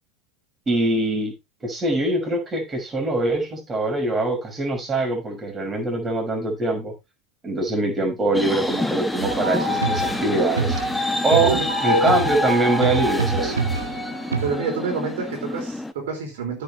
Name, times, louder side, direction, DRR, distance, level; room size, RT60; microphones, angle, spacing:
voice 1, 0.7-1.3 1.6-6.9 7.4-10.8 11.2-13.6, right 2 dB, 20° right, 6.1 m, -23 dB
sound 1, 8.3-15.9, left 2 dB, 5° left, 1.1 m, -27 dB
sound 2, 9.2-14.5, right 4 dB, 75° right, 1.5 m, -26 dB
voice 2, 14.4-16.6, right 5 dB, 60° right, 4.5 m, -28 dB
16.0 x 6.8 x 3.3 m
figure-of-eight pair, 80°, 0 cm